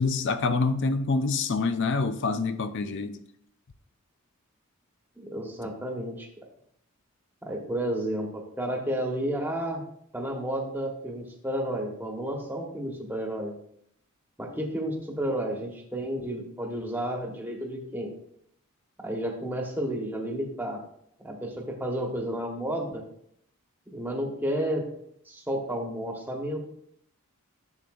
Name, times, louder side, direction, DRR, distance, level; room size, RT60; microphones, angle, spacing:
voice 1, 0.0-3.2, left 4 dB, 55° left, 0.5 m, -26 dB
voice 2, 5.2-6.3 7.4-9.8 10.1-13.5 14.4-18.1 19.0-20.8 21.2-23.0 23.9-24.8 25.3-26.6, right 1 dB, 10° right, 1.2 m, -31 dB
10.5 x 7.0 x 2.5 m
head